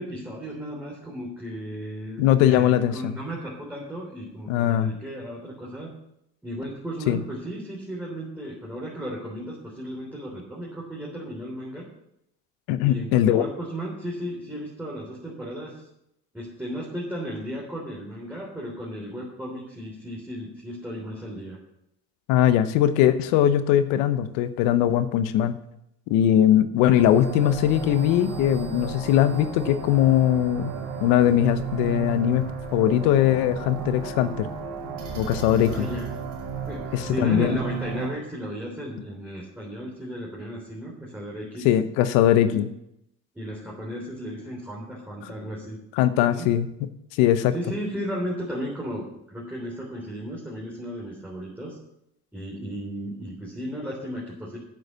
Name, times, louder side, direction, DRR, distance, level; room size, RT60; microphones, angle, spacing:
voice 1, 0.0-5.9 6.4-11.8 12.8-15.8 16.3-21.6 35.6-36.1 36.7-41.7 42.4-42.7 43.3-45.8 46.3-46.5 47.5-51.8 52.3-54.6, equal, 5° right, -4 dB, 3.6 m, -35 dB
voice 2, 2.2-3.1 4.5-4.9 7.1-7.2 12.7-13.5 22.3-25.6 26.1-30.7 31.0-32.4 32.7-34.5 35.2-35.9 36.9-37.6 41.6-42.7 46.0-46.9 47.2-47.5, left 11 dB, 85° left, 12 dB, 0.9 m, -20 dB
sound 1, 26.9-38.1, right 6 dB, 90° right, 2.7 m, -33 dB
9.0 x 7.9 x 6.8 m, 0.80 s
supercardioid pair, 85°, 33 cm